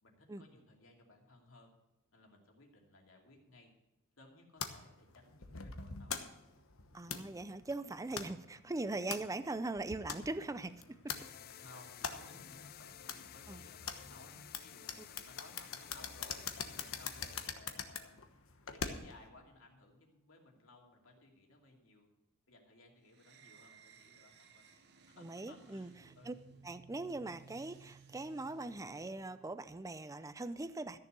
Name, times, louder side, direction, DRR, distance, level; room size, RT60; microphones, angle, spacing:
voice 1, 0.0-1.7 2.1-3.7 4.2-6.3 11.6-18.2 18.6-22.1 22.5-26.4, left 2 dB, 70° left, 1 dB, 2.7 m, -60 dB
sound 1, 4.6-19.3, left 6 dB, 85° left, 1.2 m, -45 dB
voice 2, 6.9-11.0 13.5-13.6 15.0-15.1 25.2-26.3 26.6-31.0, right 2 dB, 15° right, 13 dB, 0.5 m, -41 dB
sound 2, 11.1-17.5, left 10 dB, 50° left, 0.5 m, -53 dB
sound 3, 23.1-29.7, right 5 dB, 55° right, 1.2 m, -60 dB
14.0 x 6.9 x 6.8 m, 0.94 s
head